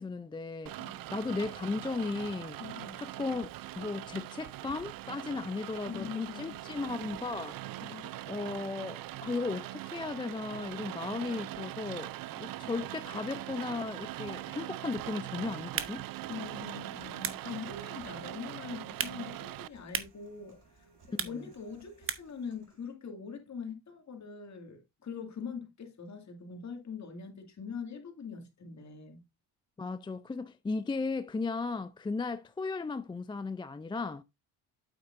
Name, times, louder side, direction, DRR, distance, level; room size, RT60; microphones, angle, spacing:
voice 1, 0.0-2.6 3.0-3.5 3.8-7.6 8.3-12.1 12.4-16.0 21.1-21.5 29.8-34.2, left 3 dB, 15° left, 0.3 m, -36 dB
Rain, 0.7-19.7, right 15 dB, 55° right, 0.5 m, -42 dB
voice 2, 2.6-3.0 5.9-6.6 7.8-8.1 16.3-20.6 21.2-29.2, left 6 dB, 40° left, 2.3 m, -43 dB
Human voice, 14.9-22.9, right 5 dB, 70° right, 5.6 m, -62 dB
sound 1, 15.6-22.5, right 6 dB, 30° right, 1.0 m, -41 dB
8.8 x 7.7 x 2.5 m
cardioid pair, 90°, 41 cm